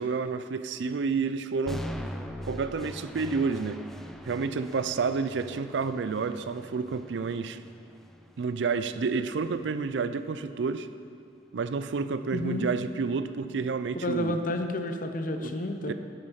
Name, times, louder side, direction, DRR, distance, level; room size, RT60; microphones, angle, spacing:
voice 1, 0.0-1.8 2.4-3.8 4.2-7.6 8.4-10.9 11.5-14.4 15.4-15.5 15.9-16.0, right 5 dB, 85° right, 11 dB, 0.4 m, -30 dB
sound 1, 1.7-9.7, equal, ahead, 0.4 m, -42 dB
voice 2, 12.3-12.7 13.9-15.9, left 2 dB, 50° left, 6 dB, 0.7 m, -30 dB
8.2 x 8.0 x 5.7 m, 2.4 s
head